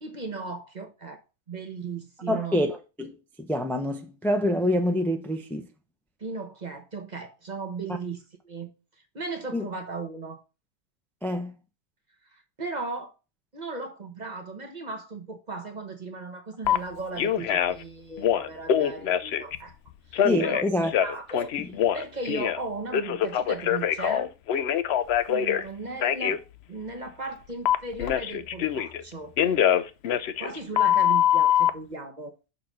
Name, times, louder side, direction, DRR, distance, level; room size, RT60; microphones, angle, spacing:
voice 1, 0.0-1.2 1.5-2.6 6.2-8.7 9.1-10.4 12.3-13.1 13.5-19.8 20.1-20.6 21.0-21.5 21.9-24.3 25.3-26.4 26.7-29.3 30.4-32.3, right 3 dB, 35° right, 1.1 m, -36 dB
voice 2, 2.3-3.1 3.4-5.7 9.5-9.6 11.2-11.5 20.2-20.9, left 1 dB, ahead, 0.6 m, -26 dB
Telephone, 16.6-16.8 17.2-17.8 18.2-19.6 20.1-22.6 22.9-25.6 26.0-26.4 27.7-29.0 29.4-31.7, left 10 dB, 60° left, 0.7 m, -24 dB
6.5 x 4.0 x 6.0 m
omnidirectional pair, 1.5 m